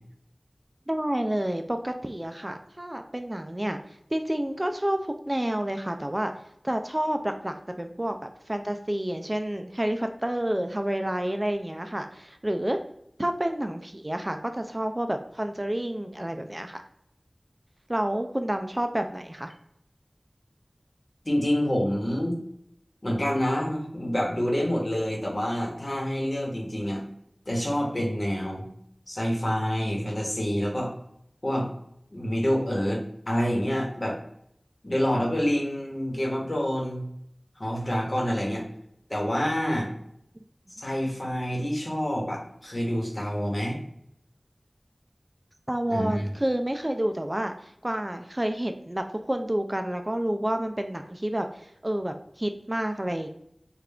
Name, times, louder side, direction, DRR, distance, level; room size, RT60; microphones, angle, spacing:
voice 1, 0.9-3.8 4.1-5.0 5.3-6.3 6.6-8.2 8.5-12.8 13.2-16.8 17.9-19.5 45.7-53.3, right 1 dB, 25° right, 6 dB, 0.3 m, -29 dB
voice 2, 21.2-22.4 23.0-27.0 27.5-28.6 29.1-30.9 31.4-31.7 32.1-34.2 34.8-37.0 37.6-38.6 39.1-39.9 40.8-43.8 45.9-46.3, equal, 45° left, -2 dB, 1.1 m, -27 dB
3.3 x 2.4 x 3.5 m, 0.73 s
wide cardioid pair, 40°, 0 cm